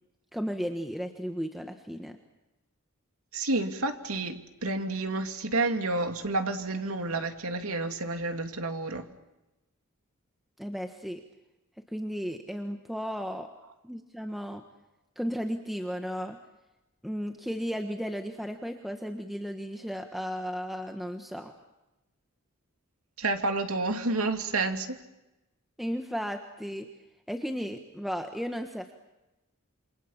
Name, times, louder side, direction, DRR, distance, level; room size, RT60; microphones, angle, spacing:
voice 1, 0.3-2.2 10.6-11.2 11.9-13.5 13.8-14.6 15.2-16.4 17.0-21.5 25.8-26.9 27.3-28.9, equal, ahead, 5 dB, 1.4 m, -34 dB
voice 2, 3.3-9.0 23.2-24.9, right 2 dB, 85° right, 6 dB, 2.6 m, -30 dB
28.0 x 27.0 x 7.3 m, 0.98 s
head